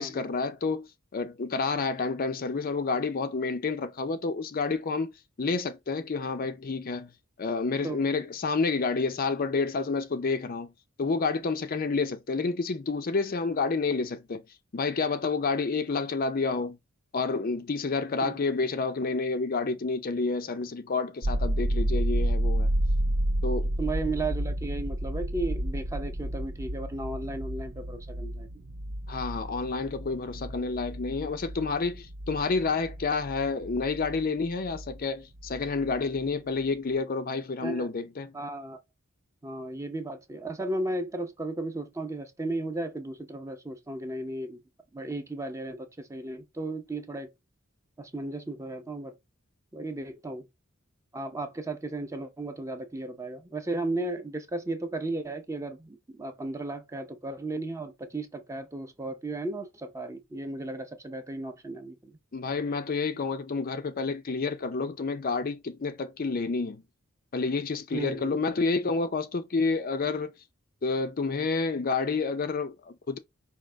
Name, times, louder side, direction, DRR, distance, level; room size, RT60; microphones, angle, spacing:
voice 1, 0.0-5.1 5.4-7.1 7.4-10.7 11.0-14.4 14.7-16.8 17.1-22.7 23.4-23.7 29.1-38.3 62.3-66.8 67.3-70.3 70.8-73.2, left 4 dB, 40° left, 0.5 m, -29 dB
sound 1, 21.2-35.0 35.4-36.3, right 1 dB, 55° right, 0.7 m, -31 dB
voice 2, 23.8-28.5 37.6-37.9 38.3-38.8 39.4-44.6 44.9-47.3 48.0-49.2 49.7-50.5 51.1-62.2 67.9-68.4, right 2 dB, 15° right, 0.7 m, -35 dB
5.2 x 2.8 x 3.3 m
head